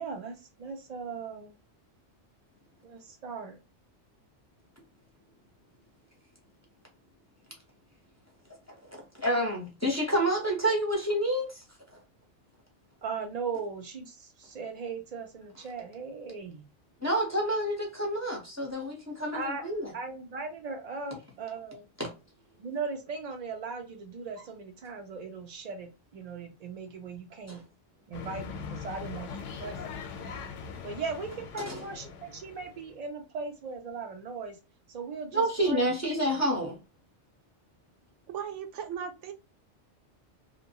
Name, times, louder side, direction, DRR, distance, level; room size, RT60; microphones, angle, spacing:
voice 1, 0.0-1.5 2.8-3.6 13.0-16.6 19.3-19.6 19.9-21.9 22.6-27.6 28.1-29.9 30.8-34.6 34.9-36.0 36.3-36.4, right 4 dB, 65° right, 0.4 m, -38 dB
voice 2, 8.9-11.6 17.0-19.9 22.0-22.1 27.5-27.6 31.6-31.8 35.3-36.8, right 1 dB, 20° left, 0.6 m, -28 dB
sound 1, 28.1-33.0, left 5 dB, 90° left, 0.9 m, -41 dB
voice 3, 38.3-39.3, right 8 dB, 85° right, 0.9 m, -37 dB
2.7 x 2.1 x 2.7 m
omnidirectional pair, 1.2 m